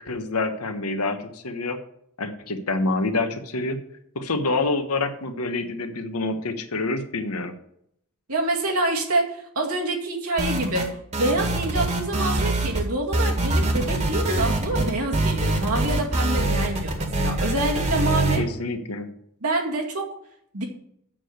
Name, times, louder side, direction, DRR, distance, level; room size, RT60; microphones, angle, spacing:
voice 1, 0.1-1.8 2.2-3.8 4.1-7.6 18.4-19.1, left 3 dB, 85° left, 8 dB, 1.2 m, -27 dB
voice 2, 8.3-18.4 19.4-20.1 20.5-20.6, right 2 dB, 80° right, 0 dB, 2.2 m, -26 dB
sound 1, 10.4-10.9 11.1-12.8 13.1-18.4, right 1 dB, 30° right, 1.6 m, -24 dB
7.5 x 6.6 x 7.8 m, 0.73 s
head